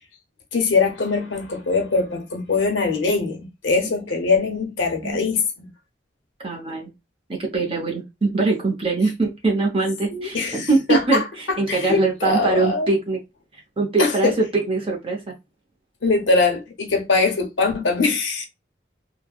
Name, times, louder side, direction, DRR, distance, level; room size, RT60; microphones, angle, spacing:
voice 1, 0.5-5.7 10.1-12.9 14.0-14.3 16.0-18.5, left 4 dB, 90° left, 0.9 m, -22 dB
voice 2, 6.4-6.9 7.3-13.2 13.8-15.3, right 3 dB, 30° right, 0.7 m, -22 dB
3.3 x 2.1 x 2.3 m
head